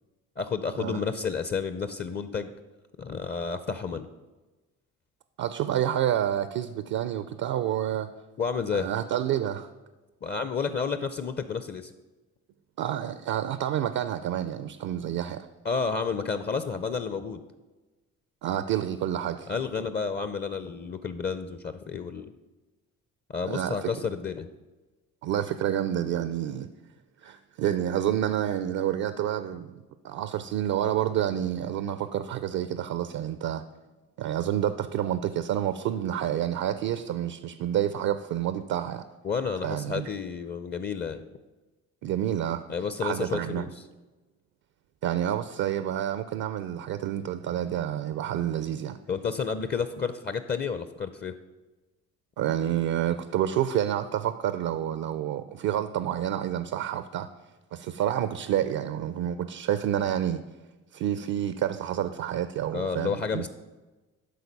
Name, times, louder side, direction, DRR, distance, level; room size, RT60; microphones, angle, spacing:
voice 1, 0.4-2.5 3.0-4.1 8.4-8.9 10.2-11.9 15.6-17.4 19.5-22.3 23.3-24.5 39.2-41.2 42.7-43.7 49.1-51.3 62.7-63.5, left 5 dB, 30° left, 11 dB, 0.6 m, -31 dB
voice 2, 5.4-8.1 8.7-9.7 12.8-15.5 18.4-19.5 23.4-23.9 25.2-26.7 27.2-29.7 30.0-33.7 34.2-39.0 39.6-40.1 42.0-42.6 43.0-43.6 45.0-49.0 52.4-57.3 57.7-60.4 60.9-63.5, right 11 dB, 65° right, 12 dB, 0.5 m, -29 dB
11.5 x 4.0 x 5.3 m, 1.2 s
supercardioid pair, 65°, 32 cm